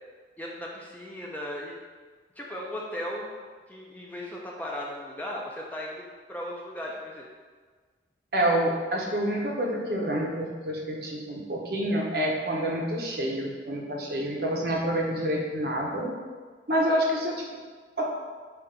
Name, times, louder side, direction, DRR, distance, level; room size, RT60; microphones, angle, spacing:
voice 1, 0.4-1.8 2.4-3.3 3.7-6.0 6.3-7.3, left 1 dB, 10° left, -3 dB, 0.6 m, -36 dB
voice 2, 8.3-16.1 16.7-17.5 18.0-18.1, right 1 dB, 55° right, -2 dB, 1.0 m, -28 dB
7.0 x 2.6 x 5.2 m, 1.5 s
head